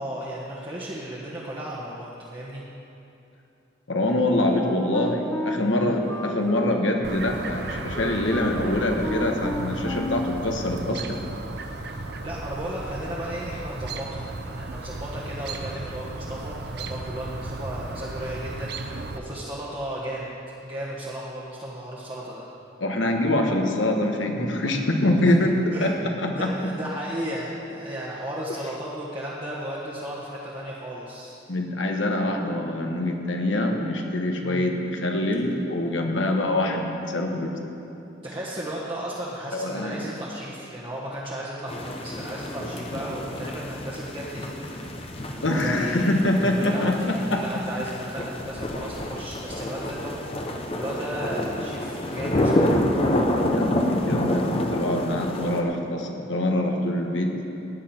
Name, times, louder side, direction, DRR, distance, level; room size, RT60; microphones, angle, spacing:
voice 1, 0.0-2.6 5.8-5.9 11.5-20.3 20.6-22.5 25.7-31.3 34.4-34.7 38.2-44.9 45.3-52.8, right 1 dB, 25° right, -8 dB, 1.4 m, -35 dB
voice 2, 3.9-11.2 22.8-26.7 31.5-37.7 39.5-40.1 45.4-47.6 53.5-57.4, left 1 dB, 75° left, 2 dB, 1.4 m, -25 dB
Wind instrument woodwind instrument, 4.5-10.4, left 2 dB, 10° left, 1.1 m, -32 dB
Chirp tweet, 7.0-19.2, right 2 dB, 55° right, 0.7 m, -35 dB
sound 1, 41.7-55.6, left 1 dB, 30° left, 0.9 m, -28 dB
16.5 x 9.9 x 4.4 m, 2.8 s
head